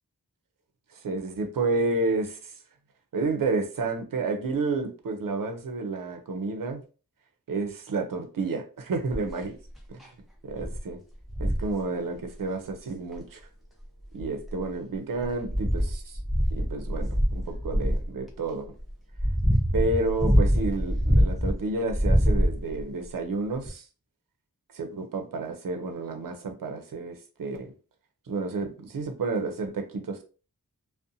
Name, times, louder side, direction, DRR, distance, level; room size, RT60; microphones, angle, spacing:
voice 1, 0.9-2.6 3.1-6.8 7.5-9.6 9.9-10.0 10.4-11.0 11.4-13.4 14.1-16.2 16.5-18.7 19.7-23.8 24.7-27.7 28.3-30.2, right 3 dB, 70° right, 0.5 m, -30 dB
sound 1, 9.1-9.4 10.0-10.1 10.6-10.8 11.3-11.7 13.1-13.2 14.0-14.7 15.2-18.1 18.8-21.5 21.9-22.8 23.7-23.8, equal, ahead, 0.6 m, -24 dB
2.5 x 2.1 x 2.6 m
wide cardioid pair, 65°, 34 cm